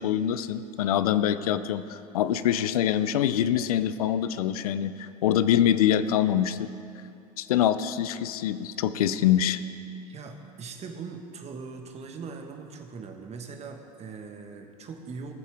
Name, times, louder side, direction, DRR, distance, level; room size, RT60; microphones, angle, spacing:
voice 1, 0.0-6.7 7.4-9.6, left 10 dB, 80° left, 13 dB, 0.5 m, -25 dB
voice 2, 10.1-15.3, right 5 dB, 35° right, 4 dB, 1.4 m, -40 dB
19.0 x 7.4 x 3.5 m, 2.5 s
hypercardioid pair, 85°, 19 cm